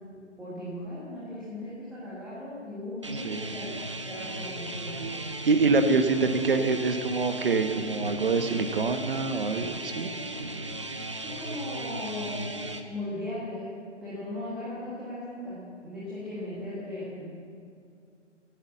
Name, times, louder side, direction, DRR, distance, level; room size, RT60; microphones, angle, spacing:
voice 1, 0.1-3.7 4.0-5.2 11.2-13.7 14.0-17.3, left 1 dB, ahead, -11 dB, 1.5 m, -37 dB
sound 1, 3.0-12.8, right 1 dB, 25° right, 0.5 m, -36 dB
voice 2, 5.5-10.1, right 4 dB, 45° right, 7 dB, 1.2 m, -25 dB
17.0 x 9.1 x 7.2 m, 2.3 s
hypercardioid pair, 160°, 37 cm